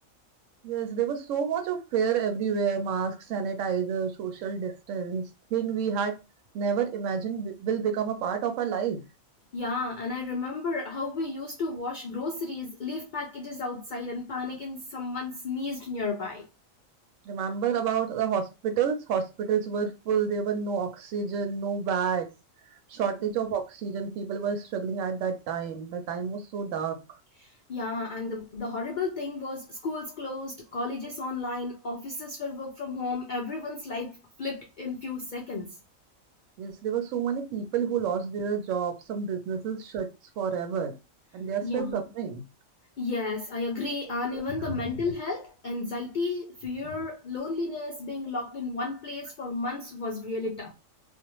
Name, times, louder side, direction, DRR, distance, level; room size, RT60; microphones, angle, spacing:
voice 1, 0.6-5.2 5.5-6.2 6.5-9.0 17.3-22.3 22.9-27.0 36.6-40.1 40.4-40.9 41.3-42.4 44.6-44.7, right 7 dB, 75° right, 0.9 m, -29 dB
voice 2, 9.5-16.4 27.4-35.8 41.6-42.1 43.0-50.7, left 3 dB, 80° left, 0.4 m, -33 dB
2.5 x 2.1 x 2.9 m
omnidirectional pair, 1.4 m